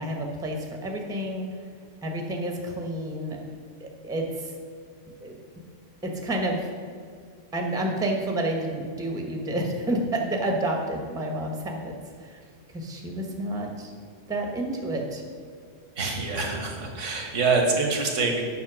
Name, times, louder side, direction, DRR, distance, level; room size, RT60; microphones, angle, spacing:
voice 1, 0.0-1.5 2.0-3.4 3.8-4.5 5.2-5.4 6.0-6.7 7.5-12.4 12.7-13.9 14.3-15.2, right 1 dB, 5° right, 1 dB, 0.9 m, -29 dB
voice 2, 16.0-18.4, right 4 dB, 75° right, 1 dB, 1.6 m, -25 dB
8.1 x 5.6 x 6.0 m, 2.1 s
omnidirectional pair, 1.3 m